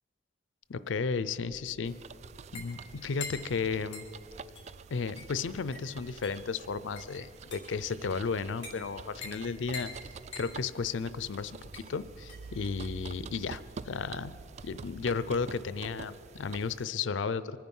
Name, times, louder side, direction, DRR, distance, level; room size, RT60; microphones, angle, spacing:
voice 1, 0.7-1.9 2.5-4.0 4.9-9.9 10.4-14.3 14.6-17.6, left 5 dB, 85° left, 15 dB, 0.5 m, -34 dB
sound 1, 0.7-14.7, left 3 dB, 35° left, 4.2 m, -48 dB
sound 2, 1.8-16.8, right 5 dB, 35° right, 0.3 m, -47 dB
24.0 x 9.6 x 5.5 m, 2.8 s
head